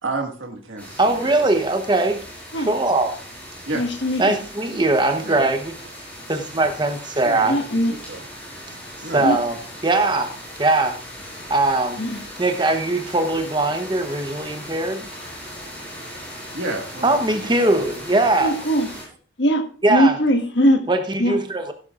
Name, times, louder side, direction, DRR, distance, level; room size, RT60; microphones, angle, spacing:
voice 1, 0.0-1.5 3.7-3.8 5.2-5.5 7.2-7.6 7.9-8.3 9.0-9.3 16.5-17.5, right 2 dB, 80° right, 1.8 m, -31 dB
sound 1, 0.8-19.0, equal, 5° left, 6.4 m, -38 dB
voice 2, 1.0-2.2 2.6-3.2 4.2-5.7 6.3-7.6 9.1-10.3 10.6-11.0 11.5-12.0 12.4-15.1 17.0-18.5 19.8-20.2 20.9-21.7, right 2 dB, 25° right, 0.9 m, -20 dB
voice 3, 3.7-4.4 7.5-7.9 9.2-9.4 12.0-12.2 18.4-18.9 19.4-19.6 19.9-20.9 21.2-21.4, equal, 65° left, 1.6 m, -20 dB
15.5 x 12.0 x 2.5 m
head